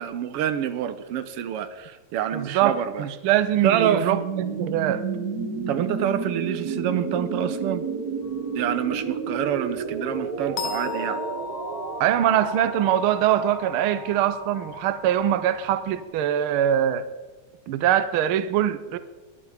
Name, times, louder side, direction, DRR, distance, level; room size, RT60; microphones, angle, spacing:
voice 1, 0.0-3.1 3.6-4.1 5.7-7.8 8.5-11.2, right 9 dB, 75° right, 1.4 m, -27 dB
voice 2, 2.3-5.0 12.0-17.1 17.7-19.0, right 11 dB, 90° right, 1.1 m, -23 dB
sound 1, 3.6-15.4, right 5 dB, 55° right, 1.1 m, -32 dB
sound 2, 8.2-16.1, left 6 dB, 85° left, 2.7 m, -38 dB
21.0 x 11.5 x 5.0 m
omnidirectional pair, 3.4 m